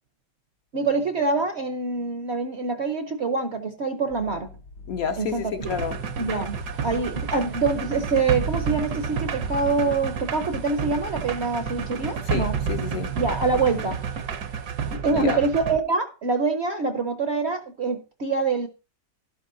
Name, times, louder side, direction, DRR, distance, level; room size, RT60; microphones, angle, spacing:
voice 1, 0.7-4.5 5.2-5.5 6.2-6.6 6.8-12.5 13.2-14.0 14.9-18.7, right 4 dB, 50° right, 0.8 m, -25 dB
sound 1, 4.1-11.2, left 3 dB, 80° left, 2.2 m, -44 dB
voice 2, 4.9-6.0 12.3-13.2 15.1-15.4, left 7 dB, 65° left, 1.0 m, -30 dB
sound 2, 5.6-15.8, right 6 dB, 65° right, 1.4 m, -30 dB
sound 3, 5.6-14.9, right 2 dB, 85° right, 2.9 m, -49 dB
12.0 x 10.5 x 2.7 m
omnidirectional pair, 1.9 m